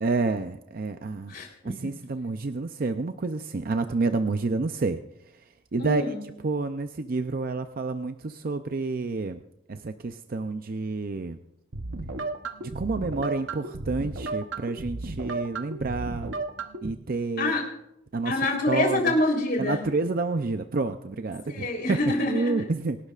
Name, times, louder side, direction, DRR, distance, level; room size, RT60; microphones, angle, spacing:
voice 1, 0.0-1.3 1.6-5.0 5.3-5.4 5.7-6.1 6.4-9.4 9.7-11.4 12.6-16.4 16.8-17.6 18.1-18.4 18.7-19.1 19.6-22.0 22.3-23.0, right 3 dB, 50° right, 8 dB, 0.5 m, -29 dB
voice 2, 1.3-1.8 5.8-6.2 17.4-17.6 18.3-19.8 21.5-22.5, left 2 dB, 50° left, 1 dB, 3.6 m, -26 dB
sound 1, 11.7-16.9, right 3 dB, 75° right, 1.0 m, -34 dB
26.0 x 12.0 x 2.5 m, 0.82 s
head